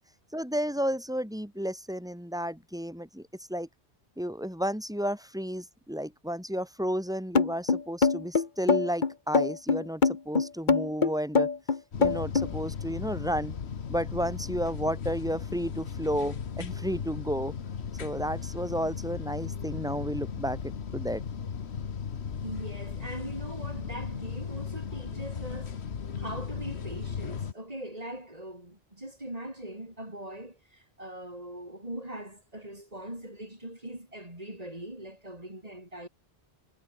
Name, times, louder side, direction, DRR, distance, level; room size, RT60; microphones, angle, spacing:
voice 1, 0.3-3.7 4.2-11.5 12.0-13.5 13.9-17.5 18.0-21.2, equal, 5° right, 3.9 m, -32 dB
sound 1, 7.4-12.5, left 5 dB, 45° left, 1.5 m, -23 dB
sound 2, 11.9-27.5, left 6 dB, 75° left, 1.5 m, -36 dB
voice 2, 22.4-25.7 26.2-30.5 31.0-36.1, right 1 dB, 35° right, 5.6 m, -41 dB
omnidirectional pair, 1.1 m